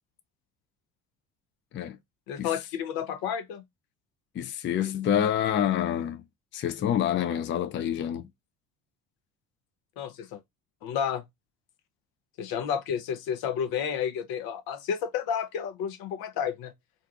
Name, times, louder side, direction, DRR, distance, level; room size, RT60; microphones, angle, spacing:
voice 1, 2.3-3.6 10.0-10.4 10.8-11.2 12.4-16.7, left 8 dB, 60° left, 0.7 m, -31 dB
voice 2, 4.3-6.2 6.5-8.3, left 10 dB, 30° left, 0.4 m, -27 dB
2.5 x 2.3 x 3.7 m
hypercardioid pair, 65°, 41 cm